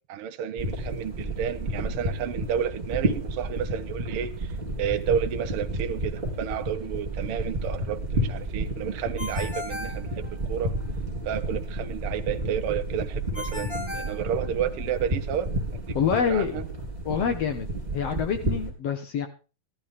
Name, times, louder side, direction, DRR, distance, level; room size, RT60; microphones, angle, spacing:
voice 1, 0.0-4.5 4.8-10.7 11.2-15.5 16.3-16.6, right 9 dB, 75° right, 6 dB, 1.3 m, -31 dB
sound 1, 0.6-18.7, right 1 dB, 15° right, 3.7 m, -31 dB
Ringtone, 9.2-10.8 13.3-15.0, left 2 dB, 15° left, 2.1 m, -37 dB
voice 2, 15.9-16.6 17.0-17.7 17.9-19.3, left 7 dB, 60° left, 7 dB, 1.7 m, -26 dB
13.5 x 13.5 x 3.7 m, 0.33 s
omnidirectional pair, 4.2 m